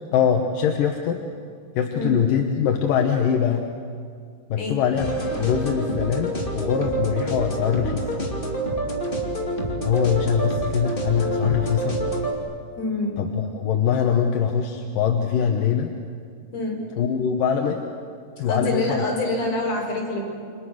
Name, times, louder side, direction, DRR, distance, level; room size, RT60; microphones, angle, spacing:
voice 1, 0.1-1.2 1.8-3.7 4.5-8.1 9.8-12.0 13.2-15.9 17.0-17.8 18.4-19.0, left 8 dB, 65° left, 3 dB, 2.4 m, -23 dB
voice 2, 1.9-2.2 4.6-4.8 12.8-13.2 16.5-16.8 18.5-20.2, left 2 dB, 40° left, -3 dB, 6.5 m, -26 dB
sound 1, 5.0-12.3, right 1 dB, 15° left, 1.8 m, -27 dB
29.0 x 26.0 x 6.5 m, 2.2 s
omnidirectional pair, 4.9 m